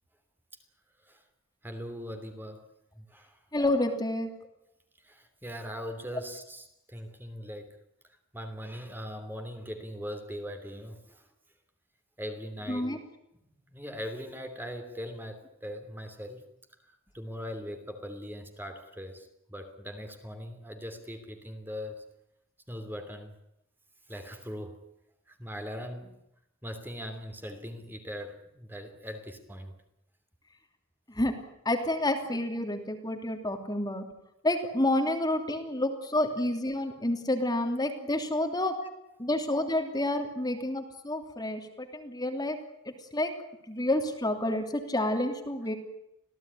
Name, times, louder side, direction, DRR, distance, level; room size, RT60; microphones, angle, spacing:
voice 1, 1.6-2.7 3.0-3.4 5.0-7.8 8.3-11.3 12.2-12.9 13.7-16.4 17.1-22.1 22.7-23.3 24.1-24.8 25.3-26.2 26.6-29.7 39.2-39.3, equal, 10° right, 6 dB, 3.0 m, -40 dB
voice 2, 3.5-4.3 12.7-13.0 31.1-31.3 31.6-34.1 34.4-38.8 39.2-42.6 42.8-43.4 43.7-45.7, left 1 dB, 20° left, 5 dB, 3.0 m, -29 dB
26.5 x 17.5 x 9.7 m, 0.81 s
head